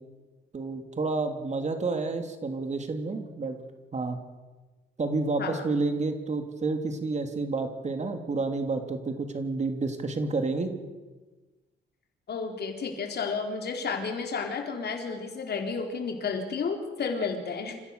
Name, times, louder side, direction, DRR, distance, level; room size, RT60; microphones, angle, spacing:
voice 1, 0.5-3.6 3.9-4.2 5.0-10.7, right 3 dB, 35° right, 6 dB, 2.8 m, -30 dB
voice 2, 12.3-17.8, left 5 dB, 55° left, 3 dB, 4.2 m, -32 dB
28.5 x 15.5 x 6.8 m, 1.2 s
cardioid pair, 90°, 20 cm